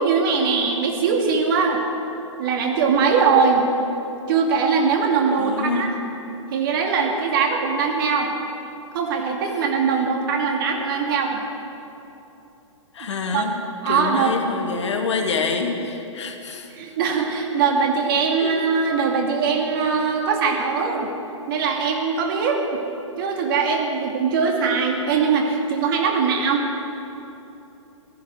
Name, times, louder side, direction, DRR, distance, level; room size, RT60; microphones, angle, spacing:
voice 1, 0.0-1.8 2.4-3.7 4.3-5.9 6.5-8.3 8.9-11.4 13.0-13.5 13.8-14.3 16.7-21.1 21.5-22.6 23.2-26.7, right 5 dB, 45° right, 2 dB, 2.3 m, -21 dB
voice 2, 5.4-5.9 9.5-9.6 12.9-16.7 18.4-18.5, left 4 dB, 65° left, 4 dB, 1.9 m, -27 dB
15.0 x 13.0 x 6.3 m, 3.0 s
figure-of-eight pair, 125°, 16 cm